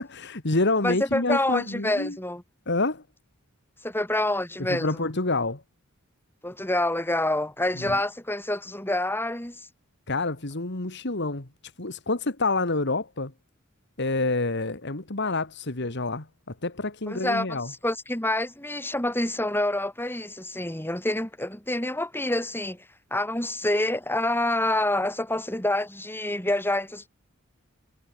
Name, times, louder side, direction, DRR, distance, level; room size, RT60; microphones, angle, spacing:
voice 1, 0.0-2.2 2.7-3.0 4.6-5.6 7.8-8.0 10.1-11.5 11.8-13.3 14.0-17.7, left 2 dB, 55° left, 2.1 m, -28 dB
voice 2, 0.8-2.4 3.8-5.1 6.4-9.7 17.1-22.8 23.1-27.1, left 1 dB, 10° left, 5.7 m, -27 dB
head